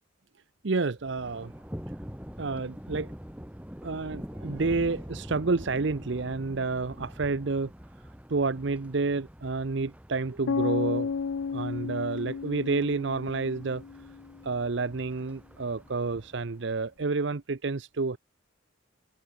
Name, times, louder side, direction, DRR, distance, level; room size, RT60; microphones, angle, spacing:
voice 1, 0.6-1.5 2.4-3.1 3.8-7.7 8.0-11.1 11.5-13.8 14.4-18.2, right 3 dB, 60° right, 0.7 m, -29 dB
Thunder, 1.0-16.9, equal, 5° right, 1.6 m, -45 dB
sound 1, 10.5-14.4, left 5 dB, 75° left, 0.4 m, -32 dB
head